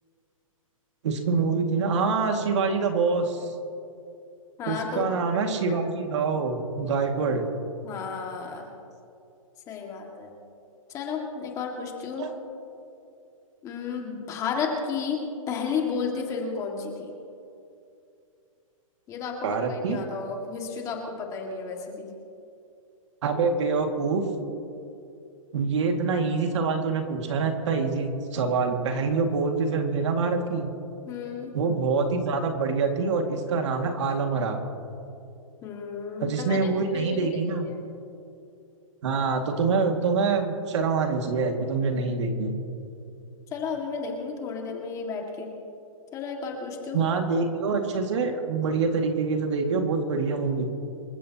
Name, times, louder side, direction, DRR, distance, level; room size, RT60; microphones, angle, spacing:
voice 1, 1.0-3.5 4.7-7.5 12.2-12.3 19.4-20.0 23.2-24.3 25.5-30.7 31.5-34.6 36.2-37.7 39.0-42.5 46.9-50.7, right 4 dB, 55° right, 4 dB, 2.2 m, -25 dB
voice 2, 4.6-5.1 5.7-5.8 7.8-8.7 9.7-10.3 10.9-12.2 13.6-15.2 15.5-17.1 19.1-22.1 31.1-31.5 35.6-37.8 43.5-45.5 46.1-47.0, left 5 dB, 20° left, 1 dB, 2.0 m, -32 dB
27.0 x 14.5 x 2.9 m, 2.6 s
hypercardioid pair, 160°, 18 cm